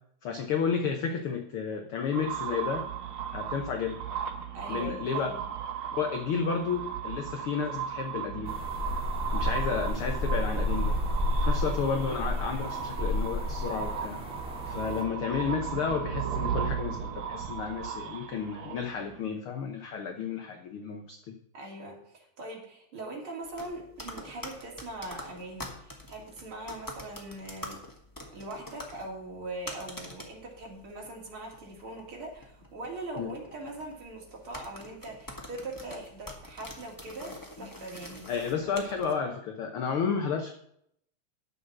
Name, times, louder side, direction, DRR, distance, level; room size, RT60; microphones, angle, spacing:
voice 1, 0.2-2.8 3.3-4.0 4.7-5.3 5.9-8.5 9.3-11.0 11.4-14.2 14.7-21.3 33.2-33.3 38.3-40.5, left 6 dB, 65° left, 4 dB, 1.5 m, -32 dB
sound 1, 2.1-19.2, right 8 dB, 70° right, 1.1 m, -36 dB
voice 2, 4.5-5.4 21.5-27.8 28.3-38.2, right 2 dB, 45° right, -2 dB, 3.6 m, -41 dB
sound 2, 8.5-15.0, left 1 dB, ahead, 1.9 m, -31 dB
sound 3, 23.4-39.1, left 1 dB, 15° left, 0.6 m, -46 dB
10.5 x 7.1 x 5.9 m, 0.69 s
omnidirectional pair, 3.4 m